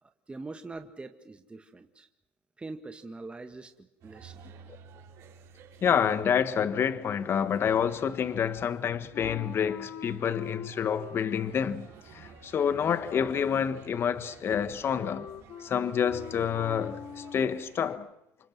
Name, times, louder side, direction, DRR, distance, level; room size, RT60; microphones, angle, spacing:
voice 1, 0.0-2.1 2.6-3.7 4.0-4.4, right 3 dB, 20° right, 1.8 m, -43 dB
sound 1, 4.0-18.0, right 6 dB, 65° right, 6.0 m, -52 dB
voice 2, 5.8-11.9 12.1-15.3 15.6-18.1, left 8 dB, 45° left, 1.5 m, -28 dB
Wind instrument woodwind instrument, 9.1-17.6, left 7 dB, 65° left, 5.2 m, -45 dB
29.0 x 25.5 x 6.2 m
hypercardioid pair, 75°, 6 cm